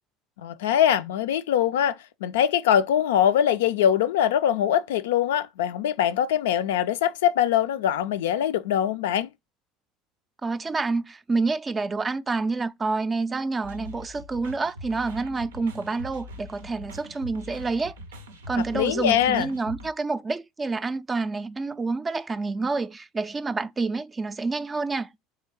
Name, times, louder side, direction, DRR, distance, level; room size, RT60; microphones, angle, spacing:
voice 1, 0.4-9.3 18.7-19.5, left 10 dB, 75° left, 0.3 m, -23 dB
voice 2, 10.4-17.9 18.5-25.1, right 3 dB, 25° right, 0.4 m, -28 dB
sound 1, 13.6-19.9, left 1 dB, 85° right, 0.6 m, -42 dB
3.7 x 3.1 x 4.3 m
hypercardioid pair, 70°, 0 cm